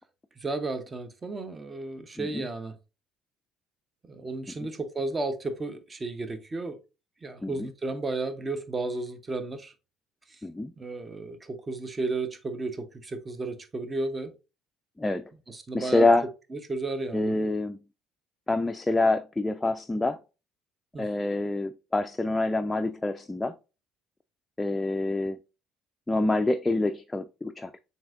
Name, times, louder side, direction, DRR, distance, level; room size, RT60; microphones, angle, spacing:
voice 1, 0.4-2.8 4.1-6.8 7.2-9.7 10.3-10.4 10.8-14.3 15.5-16.1 16.5-17.3 20.9-21.0, right 3 dB, 25° right, 0.7 m, -33 dB
voice 2, 10.4-10.7 15.0-15.2 15.7-16.3 17.1-17.8 18.5-20.2 21.0-23.6 24.6-25.4 26.1-27.8, left 2 dB, 15° left, 0.3 m, -26 dB
7.2 x 2.8 x 2.4 m
hypercardioid pair, 55°, 0 cm